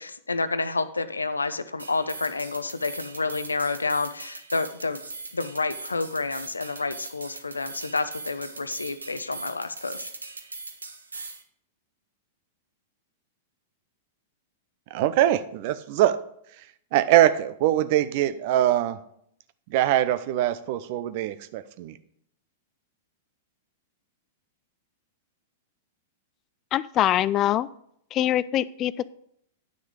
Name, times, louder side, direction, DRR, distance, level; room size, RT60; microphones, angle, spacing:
voice 1, 0.0-5.0 5.3-10.1, left 3 dB, 85° left, 13 dB, 0.6 m, -29 dB
sound 1, 1.8-11.4, right 3 dB, 80° right, 1.1 m, -40 dB
voice 2, 14.9-16.2 16.9-19.0 19.7-22.0, right 13 dB, 50° right, 13 dB, 0.6 m, -22 dB
voice 3, 26.7-27.7 28.1-29.1, left 12 dB, 30° left, 19 dB, 0.4 m, -23 dB
9.9 x 6.3 x 4.9 m, 0.70 s
figure-of-eight pair, 100°, 0 cm